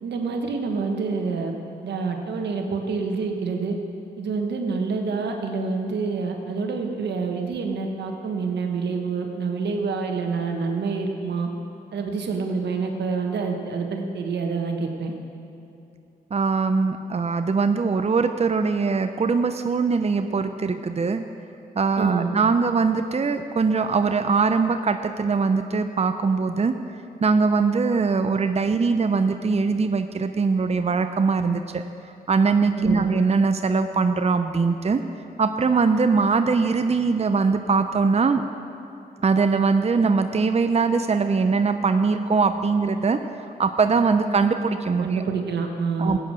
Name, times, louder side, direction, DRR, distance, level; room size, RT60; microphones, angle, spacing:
voice 1, 0.0-1.5 1.8-3.8 4.2-11.5 11.9-15.1 22.0-22.3 32.8-33.1 45.0-46.2, right 4 dB, 85° right, 4 dB, 1.4 m, -27 dB
voice 2, 16.3-21.2 21.8-26.7 27.2-31.8 32.3-35.0 35.4-38.4 39.2-43.2 43.6-45.2 46.0-46.2, right 4 dB, 40° right, 8 dB, 0.7 m, -21 dB
15.0 x 9.1 x 6.4 m, 2.9 s
cardioid pair, 55°, 17 cm